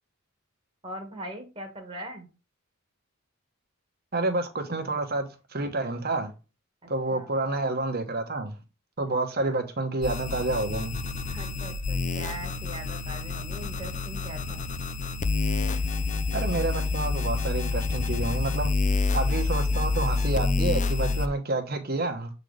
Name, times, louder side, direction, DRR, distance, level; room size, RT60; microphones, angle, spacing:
voice 1, 0.8-2.3 6.8-7.3 9.4-9.6 11.2-14.6, right 1 dB, 25° right, 1.4 m, -41 dB
voice 2, 4.1-6.3 6.9-8.5 9.0-11.0 16.3-18.7 19.1-22.3, right 2 dB, 45° right, 1.2 m, -29 dB
sound 1, 10.0-21.3, left 3 dB, 35° left, 0.5 m, -28 dB
7.4 x 4.0 x 3.2 m
head